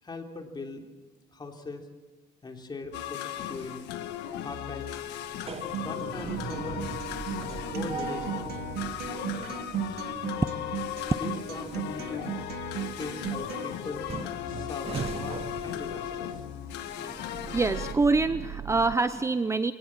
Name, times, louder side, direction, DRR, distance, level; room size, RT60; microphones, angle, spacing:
voice 1, 0.0-0.8 1.3-1.9 2.4-3.9 4.4-4.9 5.6-6.8 7.4-8.5 11.2-12.3 13.0-14.1 14.5-16.4, left 3 dB, 25° left, 3 dB, 3.4 m, -40 dB
sound 1, 2.9-17.9, left 11 dB, 85° left, 1.6 m, -36 dB
sound 2, 3.4-3.9 4.3-19.0, right 7 dB, 35° right, 1.1 m, -41 dB
Acoustic guitar, 5.7-13.7, right 11 dB, 70° right, 1.2 m, -37 dB
voice 2, 17.0-19.7, right 3 dB, 15° right, 12 dB, 0.7 m, -26 dB
23.5 x 18.5 x 7.4 m, 1.2 s
cardioid pair, 110°, 17 cm